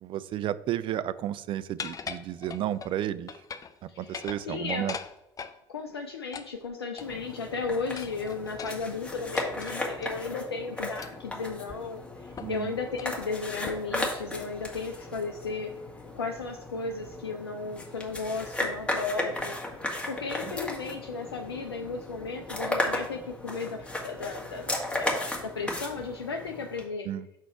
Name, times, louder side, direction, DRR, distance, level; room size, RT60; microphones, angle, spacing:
voice 1, 0.0-3.3 4.0-4.9 12.4-12.7 27.1-27.3, right 11 dB, 40° right, 15 dB, 0.4 m, -32 dB
sound 1, 1.8-2.9 3.3-3.8 4.0-5.6 6.3-7.3 8.0-10.2 11.0-11.3 11.7-11.8 12.4-12.6 12.9-13.2 13.7-14.0, left 6 dB, 30° left, 0.5 m, -41 dB
voice 2, 3.9-4.2 4.5-4.9 5.7-15.7 16.2-27.1, left 4 dB, 85° left, 4 dB, 0.4 m, -35 dB
sound 2, 7.0-26.8, left 1 dB, 10° left, 1.7 m, -35 dB
6.2 x 4.0 x 4.4 m, 0.89 s
figure-of-eight pair, 60°, 13 cm